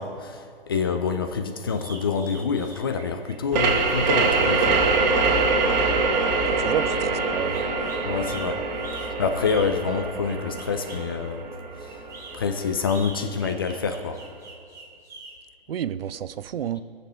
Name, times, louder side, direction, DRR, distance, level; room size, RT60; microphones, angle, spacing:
voice 1, 0.0-4.8 8.0-8.7 9.0-11.5 11.8-11.9 12.3-14.2, left 5 dB, 25° left, 7 dB, 0.3 m, -27 dB
Man Doing Bird Whistles, 1.8-11.1 11.9-15.3, right 3 dB, 10° right, 1.7 m, -44 dB
sound 1, 3.5-12.9, right 4 dB, 45° right, 1.5 m, -24 dB
voice 2, 6.4-7.6 15.7-16.8, right 9 dB, 70° right, 15 dB, 0.5 m, -30 dB
17.5 x 6.7 x 3.3 m, 2.2 s
figure-of-eight pair, 135°, 31 cm